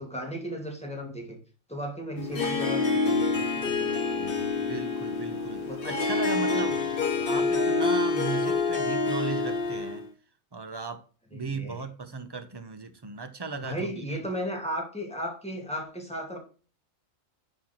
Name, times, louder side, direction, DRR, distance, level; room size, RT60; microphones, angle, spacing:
voice 1, 0.0-1.4 1.7-4.4 5.3-5.8 6.1-6.7 7.1-7.3 11.3-11.8 13.5-16.4, equal, 5° left, 2.4 m, -36 dB
Harp, 2.2-10.1, left 3 dB, 45° left, 1.3 m, -27 dB
voice 2, 4.6-6.9 7.2-10.0 10.5-11.0 11.3-14.2, right 4 dB, 20° right, 0.9 m, -37 dB
11.0 x 4.7 x 4.5 m
omnidirectional pair, 1.4 m